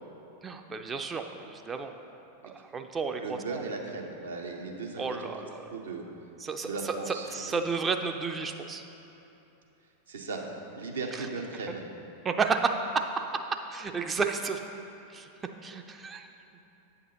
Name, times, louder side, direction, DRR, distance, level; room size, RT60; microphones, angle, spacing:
voice 1, 0.4-1.9 2.4-3.6 5.0-5.6 6.4-8.8 11.1-11.3 12.2-13.2 13.7-14.6 15.1-15.3 15.6-16.3, right 4 dB, 20° right, 6 dB, 0.3 m, -32 dB
voice 2, 3.2-5.3 5.7-6.0 6.6-7.7 10.1-10.4 10.8-11.8, right 4 dB, 65° right, 2 dB, 0.7 m, -37 dB
8.6 x 5.9 x 2.9 m, 3.0 s
figure-of-eight pair, 90°, 0 cm